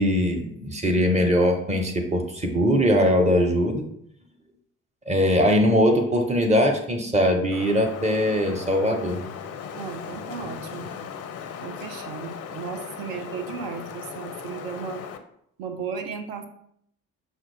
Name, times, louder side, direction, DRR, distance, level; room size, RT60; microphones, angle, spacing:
voice 1, 0.0-3.8 5.1-9.2, equal, 15° right, 2 dB, 1.0 m, -21 dB
Wind, 7.5-15.2, left 7 dB, 35° left, 0.5 m, -38 dB
voice 2, 9.7-11.1 11.6-15.0 15.6-16.5, right 6 dB, 55° right, 6 dB, 0.7 m, -35 dB
5.5 x 2.8 x 3.3 m, 0.69 s
figure-of-eight pair, 45°, 42 cm